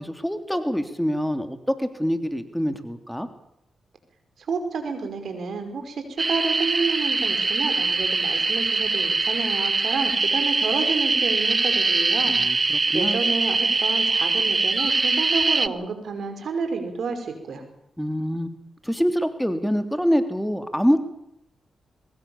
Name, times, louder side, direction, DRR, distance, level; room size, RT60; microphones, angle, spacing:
voice 1, 0.0-3.3 12.3-13.2 18.0-18.5 18.8-21.0, equal, ahead, 8 dB, 3.1 m, -25 dB
voice 2, 4.5-12.7 12.9-17.6, right 4 dB, 70° right, 7 dB, 5.4 m, -30 dB
sound 1, 6.2-15.7, right 3 dB, 40° right, 1.1 m, -23 dB
23.0 x 21.0 x 7.3 m, 0.79 s
supercardioid pair, 45°, 0 cm